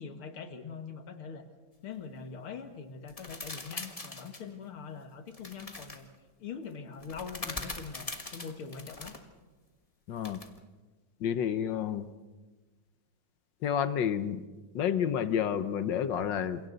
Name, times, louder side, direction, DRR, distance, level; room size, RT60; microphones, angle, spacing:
voice 1, 0.0-1.5 1.8-6.1 6.4-9.2, left 5 dB, 85° left, 6 dB, 2.5 m, -43 dB
sound 1, 3.1-4.5 5.3-6.0 7.0-9.2 10.2-10.6, left 3 dB, 20° left, 1.2 m, -42 dB
voice 2, 10.1-10.4 11.2-12.0 13.6-14.4 14.7-16.6, left 8 dB, 65° left, 12 dB, 1.5 m, -30 dB
29.0 x 27.0 x 4.0 m, 1.3 s
omnidirectional pair, 2.3 m